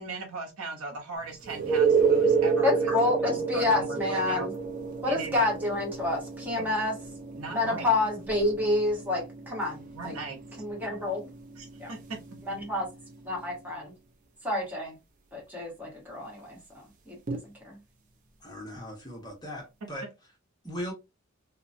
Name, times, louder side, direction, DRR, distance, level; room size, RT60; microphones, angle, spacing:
voice 1, 0.0-2.9 3.2-4.5 5.0-5.4 6.6-6.7 7.3-7.9 9.9-10.4 11.6-12.2, right 3 dB, 85° right, 0.8 m, -38 dB
sound 1, 1.5-13.0 17.3-17.4, right 5 dB, 35° right, 0.5 m, -30 dB
voice 2, 2.6-4.5 5.0-6.9 7.5-10.1 10.6-11.2 11.8-11.9 12.5-12.9 13.2-13.9 14.4-15.0 15.3-17.8, left 2 dB, 10° right, 1.2 m, -29 dB
voice 3, 18.4-20.1 20.6-20.9, equal, 20° left, 1.1 m, -38 dB
2.9 x 2.2 x 2.5 m
head